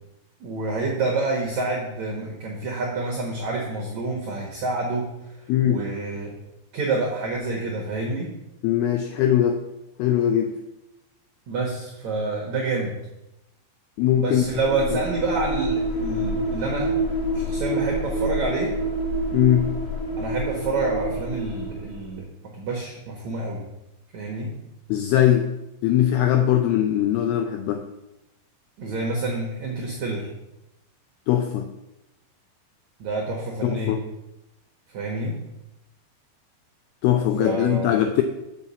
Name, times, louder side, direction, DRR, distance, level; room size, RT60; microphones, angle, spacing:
voice 1, 0.4-5.1 5.4-6.3 6.7-8.3 11.5-12.9 14.2-16.9 17.3-18.7 20.2-22.2 22.5-23.6 24.1-24.5 28.8-30.3 33.0-34.0 34.9-35.4 37.4-37.9, right 3 dB, 70° right, -1 dB, 1.7 m, -28 dB
voice 2, 5.5-5.8 8.6-9.6 10.0-10.6 14.0-14.5 14.9-15.0 19.3-19.7 24.9-25.5 25.8-27.9 31.3-31.7 33.6-34.1 37.0-38.2, left 11 dB, 85° left, 7 dB, 2.2 m, -21 dB
sound 1, 14.3-22.1, right 1 dB, 50° left, 3.1 m, -27 dB
7.0 x 5.9 x 7.0 m, 0.92 s
omnidirectional pair, 5.2 m